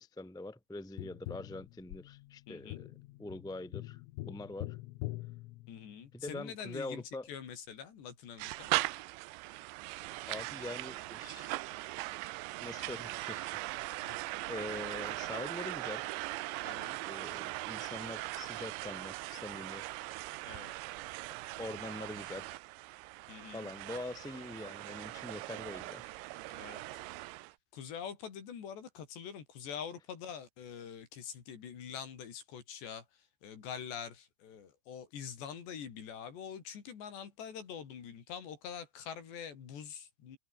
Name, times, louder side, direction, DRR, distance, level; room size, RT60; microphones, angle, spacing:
voice 1, 0.0-2.9 3.2-4.8 6.1-7.3 10.2-11.5 12.6-13.6 13.9-14.2 14.5-16.1 17.0-19.8 21.6-22.5 23.5-26.0, left 2 dB, ahead, 1.1 m, -44 dB
Tap, 1.0-6.3 8.9-9.0, left 19 dB, 90° left, 3.6 m, -45 dB
voice 2, 2.5-2.8 5.7-8.7 14.0-14.2 16.7-17.0 20.5-20.7 23.3-23.7 26.5-26.8 27.7-40.4, left 7 dB, 60° left, 5.4 m, -45 dB
sound 1, 8.4-27.5, right 21 dB, 85° right, 2.6 m, -40 dB
omnidirectional pair, 5.9 m